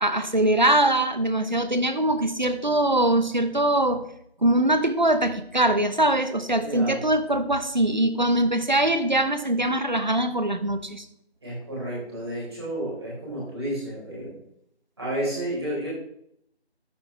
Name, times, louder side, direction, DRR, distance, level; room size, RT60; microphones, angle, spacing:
voice 1, 0.0-4.0 4.4-11.1, right 1 dB, 45° right, 10 dB, 1.0 m, -22 dB
voice 2, 6.6-7.0 11.4-14.4 15.0-15.9, right 1 dB, 25° right, -6 dB, 4.6 m, -31 dB
12.5 x 9.4 x 3.4 m, 0.71 s
figure-of-eight pair, 175°, 32 cm